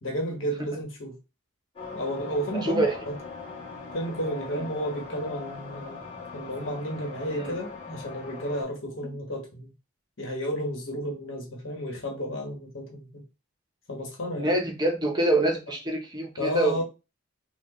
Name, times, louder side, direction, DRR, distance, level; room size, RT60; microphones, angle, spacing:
voice 1, 0.0-1.2 1.9-3.1 3.9-6.0 6.3-9.7 10.2-13.2 13.9-14.5 16.4-16.8, equal, 65° left, 1.2 m, -32 dB
sound 1, 1.8-8.6, left 4 dB, 25° left, 1.6 m, -40 dB
voice 2, 2.5-2.9 4.5-4.7 7.3-7.5 9.0-9.1 14.4-16.8, right 1 dB, 20° right, 0.7 m, -26 dB
4.3 x 2.2 x 3.0 m
head